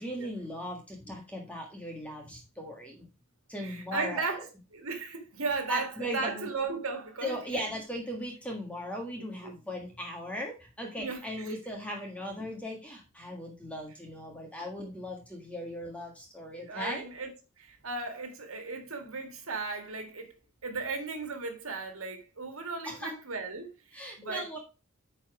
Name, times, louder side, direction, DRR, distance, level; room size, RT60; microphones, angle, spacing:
voice 1, 0.0-3.1 3.5-4.5 5.7-6.5 7.2-17.1 22.8-23.1 23.9-24.6, equal, 5° left, 1.6 m, -38 dB
voice 2, 3.6-4.4 4.7-7.7 9.4-9.5 11.0-11.5 16.6-17.3 17.6-20.3 20.6-24.6, right 4 dB, 90° right, 1.8 m, -36 dB
9.4 x 4.4 x 4.8 m
head